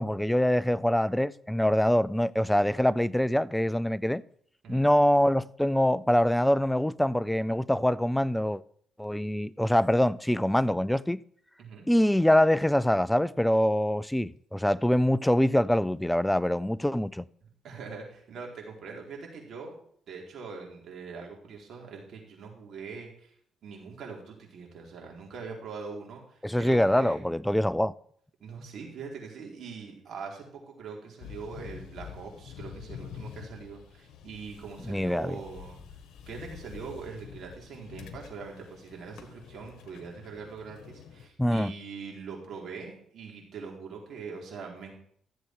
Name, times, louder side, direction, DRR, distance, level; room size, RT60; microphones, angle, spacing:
voice 1, 0.0-4.2 4.7-8.6 9.0-11.2 11.9-17.2 26.4-27.9 34.9-35.4 41.4-41.7, left 1 dB, 5° left, 0.4 m, -24 dB
voice 2, 17.6-19.8 20.1-23.3 23.6-27.2 28.4-35.8 36.3-44.9, right 5 dB, 65° right, 4.2 m, -42 dB
sound 1, 31.2-41.3, left 8 dB, 80° left, 1.5 m, -47 dB
14.0 x 7.8 x 4.8 m
cardioid pair, 90°, 0 cm